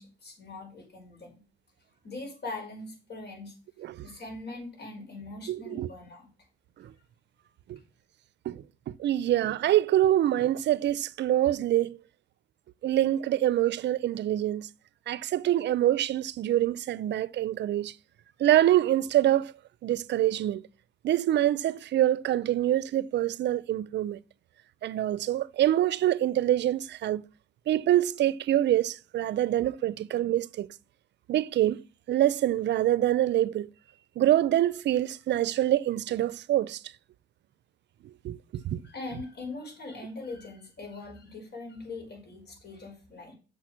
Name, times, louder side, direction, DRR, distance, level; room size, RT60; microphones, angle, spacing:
voice 1, 0.0-1.4 2.0-3.5 4.0-6.3 38.8-43.3, left 3 dB, 60° left, 5.4 m, -41 dB
voice 2, 5.5-5.9 6.8-6.9 7.7-7.8 8.5-12.0 12.8-14.7 15.1-17.9 18.4-19.5 19.8-20.7 21.0-24.2 24.8-27.2 27.7-30.7 31.3-31.8 32.1-33.7 34.2-36.8 38.2-38.8, right 13 dB, 60° right, 0.4 m, -25 dB
6.7 x 5.9 x 6.3 m
cardioid pair, 90°, 20 cm